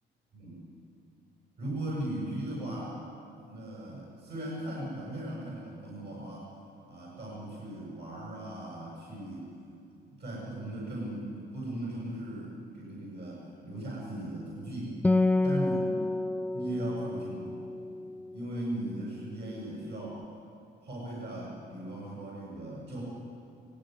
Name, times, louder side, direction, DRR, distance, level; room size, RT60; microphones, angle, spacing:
voice 1, 1.6-3.0 3.4-6.5 6.9-9.5 10.1-15.0 15.4-16.0 16.5-17.6 18.3-20.2 20.8-23.0, right 1 dB, 60° right, -5 dB, 7.4 m, -38 dB
Acoustic guitar, 15.0-18.8, left 2 dB, 5° left, 0.4 m, -29 dB
19.0 x 17.0 x 9.3 m, 2.6 s
cardioid pair, 90°, 20 cm